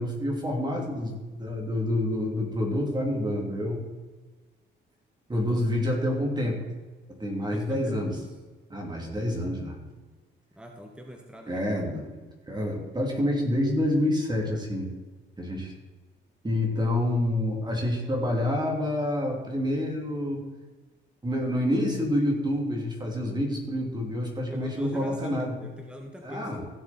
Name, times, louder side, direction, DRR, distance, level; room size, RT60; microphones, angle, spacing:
voice 1, 0.0-3.8 5.3-6.6 7.2-8.2 8.7-9.8 11.5-12.1 12.5-14.9 15.4-15.7 16.4-20.4 21.2-25.5 26.2-26.7, left 1 dB, 20° right, 0 dB, 3.2 m, -28 dB
voice 2, 7.5-8.3 10.5-11.6 24.5-26.5, equal, 5° right, 2 dB, 1.4 m, -41 dB
16.0 x 7.2 x 4.4 m, 1.3 s
cardioid pair, 90°, 20 cm